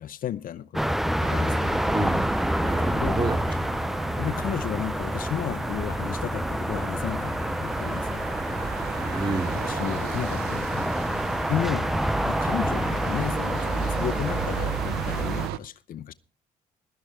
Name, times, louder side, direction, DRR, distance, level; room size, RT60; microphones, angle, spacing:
voice 1, 0.0-1.8 2.9-3.2 4.2-8.3 9.5-10.9 11.5-11.9 12.2-16.1, left 11 dB, 60° left, 0.7 m, -33 dB
sound 1, 0.7-15.5, equal, ahead, 0.6 m, -28 dB
sound 2, 1.2-15.6, right 15 dB, 85° right, 0.7 m, -36 dB
sound 3, 2.2-8.3, right 7 dB, 55° right, 1.5 m, -46 dB
voice 2, 2.6-3.7 9.1-9.6, right 2 dB, 30° right, 3.3 m, -29 dB
16.5 x 13.0 x 3.6 m
supercardioid pair, 75°, 16 cm